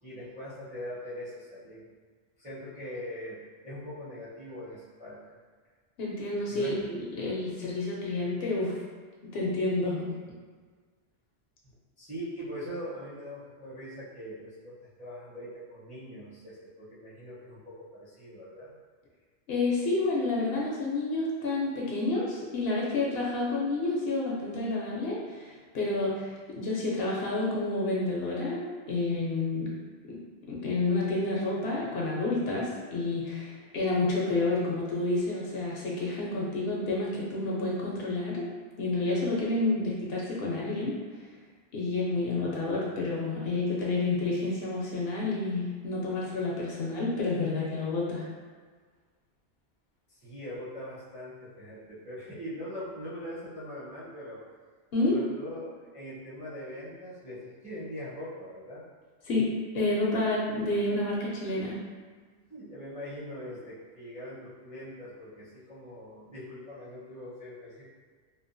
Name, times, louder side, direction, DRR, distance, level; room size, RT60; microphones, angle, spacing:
voice 1, 0.0-1.9 2.4-5.4 6.5-6.8 12.0-18.7 50.1-54.4 55.1-58.9 62.5-67.8, equal, 10° right, -10 dB, 0.6 m, -42 dB
voice 2, 6.0-8.8 9.2-10.2 19.5-29.7 30.0-30.2 30.5-38.4 38.8-41.0 41.7-48.3 54.9-55.2 59.3-59.5 59.7-61.8, left 2 dB, 65° left, -4 dB, 0.7 m, -29 dB
2.9 x 2.1 x 2.5 m, 1.5 s
omnidirectional pair, 1.2 m